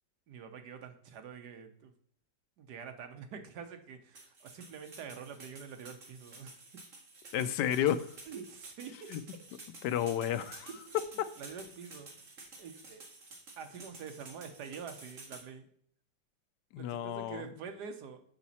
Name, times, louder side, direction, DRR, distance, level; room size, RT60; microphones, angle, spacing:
voice 1, 0.3-1.9 2.6-6.6 8.3-8.9 10.7-11.0 11.4-12.2 12.6-13.1 13.6-15.7 16.8-18.2, right 6 dB, 70° right, 7 dB, 1.4 m, -46 dB
sound 1, 4.1-15.4, right 3 dB, 50° right, 1.9 m, -52 dB
voice 2, 7.3-8.1 9.1-9.2 9.8-10.7 11.2-11.3 16.7-17.4, left 10 dB, 80° left, 13 dB, 1.2 m, -31 dB
7.1 x 5.9 x 4.1 m, 0.65 s
omnidirectional pair, 1.8 m